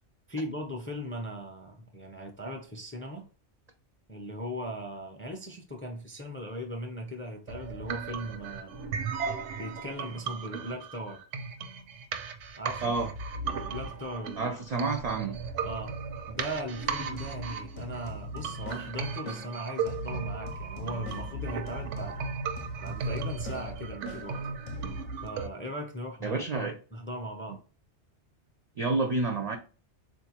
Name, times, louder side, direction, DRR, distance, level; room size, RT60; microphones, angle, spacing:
voice 1, 0.3-3.2 4.1-8.7 9.6-11.2 12.6-13.0 13.5-14.5 15.6-15.9 16.3-22.1 22.8-24.6 25.2-27.6, equal, 15° left, 0.4 m, -38 dB
sound 1, 7.5-25.5, right 5 dB, 85° right, 0.9 m, -36 dB
voice 2, 14.4-15.4 26.2-26.7 28.8-29.6, right 3 dB, 60° right, 0.4 m, -29 dB
sound 2, 17.1-25.3, left 1 dB, 55° left, 0.7 m, -41 dB
3.8 x 2.6 x 2.8 m
omnidirectional pair, 1.2 m